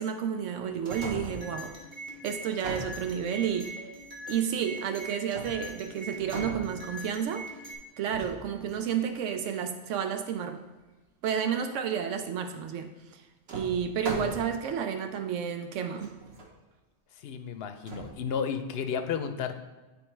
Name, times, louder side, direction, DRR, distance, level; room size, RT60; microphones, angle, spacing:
voice 1, 0.0-1.8 2.2-3.8 4.3-7.5 8.0-10.7 11.2-13.2 13.5-16.2, right 8 dB, 80° right, 7 dB, 0.9 m, -31 dB
sound 1, 0.9-7.7, right 1 dB, 40° right, 1.6 m, -43 dB
sound 2, 0.9-1.6 2.4-3.6 5.3-5.8 6.2-7.3 8.1-9.0 12.5-12.6 13.5-14.7 15.4-15.5 15.9-16.5 17.9-18.1, right 2 dB, 60° right, 1.3 m, -39 dB
voice 2, 17.2-19.6, left 7 dB, 60° left, 8 dB, 0.8 m, -32 dB
9.5 x 3.6 x 4.5 m, 1.2 s
omnidirectional pair, 1.2 m